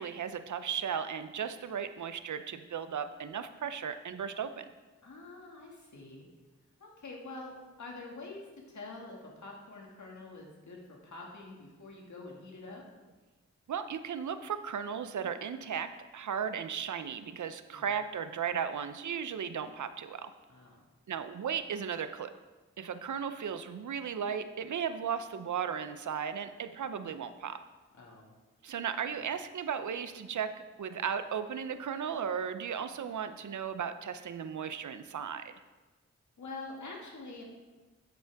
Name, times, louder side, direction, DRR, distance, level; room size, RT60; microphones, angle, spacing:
voice 1, 0.0-4.7 13.7-20.3 21.1-22.3 22.8-27.6 28.6-35.5, right 7 dB, 85° right, 11 dB, 0.6 m, -36 dB
voice 2, 5.0-6.3 6.8-12.8 17.7-17.9 20.5-20.8 28.0-28.3 29.0-29.2 36.4-37.4, left 3 dB, 80° left, -1 dB, 2.1 m, -46 dB
9.3 x 8.2 x 3.5 m, 1.2 s
cardioid pair, 50°, 29 cm